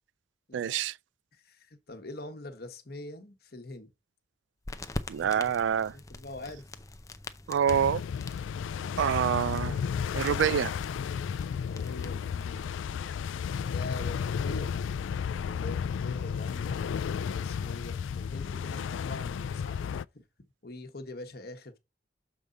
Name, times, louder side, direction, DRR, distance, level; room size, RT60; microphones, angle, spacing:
voice 1, 0.5-1.0 5.1-5.9 7.5-8.0 9.0-9.8 10.1-10.7, right 8 dB, 75° right, 0.3 m, -26 dB
voice 2, 1.3-3.9 5.2-5.5 5.9-6.7 11.5-12.7 13.6-14.9 15.3-16.8 17.2-19.8 20.1-20.2 20.6-21.8, left 2 dB, 55° left, 1.2 m, -44 dB
sound 1, 4.6-12.8, left 2 dB, 15° left, 0.6 m, -44 dB
Waves Against Shore, 7.7-20.0, left 7 dB, 90° left, 0.3 m, -33 dB
7.1 x 4.9 x 3.8 m
head